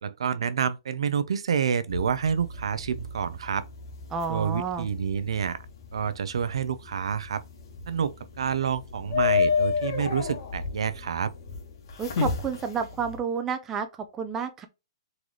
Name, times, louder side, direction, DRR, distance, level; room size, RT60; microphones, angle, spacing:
voice 1, 0.0-3.6 4.3-5.6 5.9-7.4 7.9-11.3, right 7 dB, 80° right, 0.5 m, -28 dB
sound 1, 1.9-13.2, left 6 dB, 50° left, 1.4 m, -32 dB
voice 2, 4.1-4.9 12.0-13.9 14.1-14.7, right 6 dB, 10° right, 0.4 m, -30 dB
3.8 x 3.2 x 3.6 m
hypercardioid pair, 170°, 3 cm